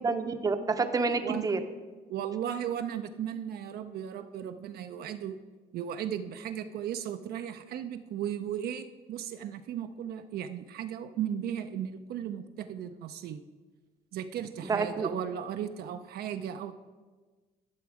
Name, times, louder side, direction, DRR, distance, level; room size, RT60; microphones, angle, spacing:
voice 1, 0.0-1.6 14.6-15.1, right 4 dB, 20° right, 8 dB, 0.7 m, -28 dB
voice 2, 2.1-5.4 5.7-13.4 14.1-16.7, right 9 dB, 65° right, 8 dB, 0.5 m, -36 dB
11.5 x 6.2 x 4.8 m, 1.3 s
cardioid pair, 110°, 17 cm